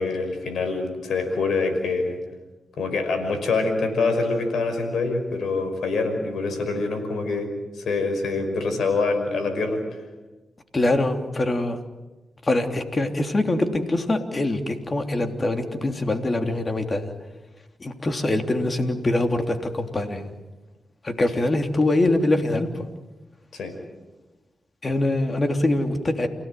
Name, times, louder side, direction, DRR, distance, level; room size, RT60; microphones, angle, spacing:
voice 1, 0.0-2.2 2.8-9.8 21.4-21.5 23.5-23.7, left 3 dB, 80° left, 6 dB, 5.5 m, -25 dB
voice 2, 10.7-11.8 12.4-17.1 17.8-20.3 21.0-22.9 24.8-26.3, left 2 dB, 40° left, 5 dB, 3.3 m, -23 dB
29.0 x 17.5 x 9.3 m, 1.2 s
cardioid pair, 50°, 0 cm